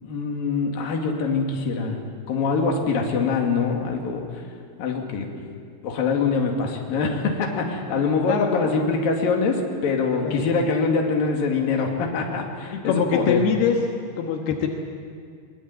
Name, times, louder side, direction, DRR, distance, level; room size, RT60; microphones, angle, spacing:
voice 1, 0.0-2.0 2.3-4.3 4.8-5.3 5.8-13.4, left 4 dB, 65° left, 1 dB, 4.0 m, -24 dB
voice 2, 8.3-8.7 10.2-10.4 12.7-13.8 14.2-14.7, left 7 dB, 85° left, 2 dB, 3.4 m, -23 dB
22.0 x 22.0 x 8.5 m, 2.2 s
omnidirectional pair, 4.5 m